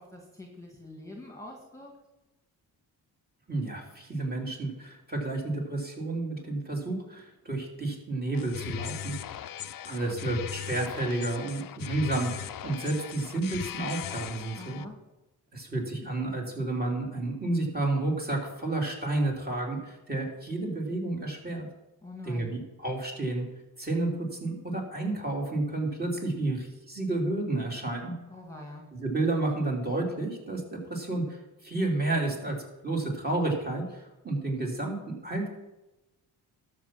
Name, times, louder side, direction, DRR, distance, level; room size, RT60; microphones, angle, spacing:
voice 1, 0.0-2.0 14.6-15.0 22.0-22.5 28.3-28.9, left 2 dB, 10° left, 0 dB, 1.9 m, -45 dB
voice 2, 3.5-9.4 9.8-14.8 15.5-21.7 22.2-23.4 23.8-28.1 29.0-32.6 32.8-35.5, right 2 dB, 25° right, -1 dB, 3.2 m, -31 dB
sound 1, 8.3-14.8, left 10 dB, 55° left, 0.6 m, -38 dB
12.5 x 6.0 x 6.0 m, 0.97 s
cardioid pair, 75°, 40 cm